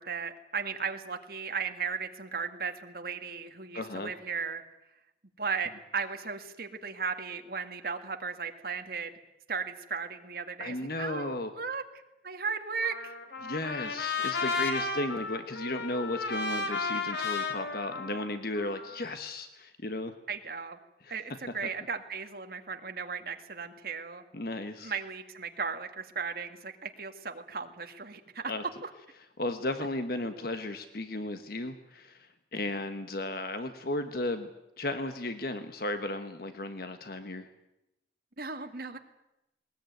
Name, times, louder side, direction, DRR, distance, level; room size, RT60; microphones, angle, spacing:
voice 1, 0.0-4.6 5.4-9.1 9.5-11.8 12.2-13.1 20.3-20.8 21.1-24.2 24.8-28.4 38.4-39.0, right 5 dB, 60° right, 6 dB, 2.0 m, -36 dB
voice 2, 3.7-4.1 10.6-11.5 13.4-20.1 21.0-21.1 24.3-24.9 28.5-28.6 29.4-34.5 34.8-37.5, left 2 dB, 60° left, 8 dB, 1.3 m, -35 dB
Trumpet, 12.8-19.1, left 4 dB, 75° left, 3.5 m, -34 dB
20.0 x 20.0 x 9.3 m, 0.91 s
head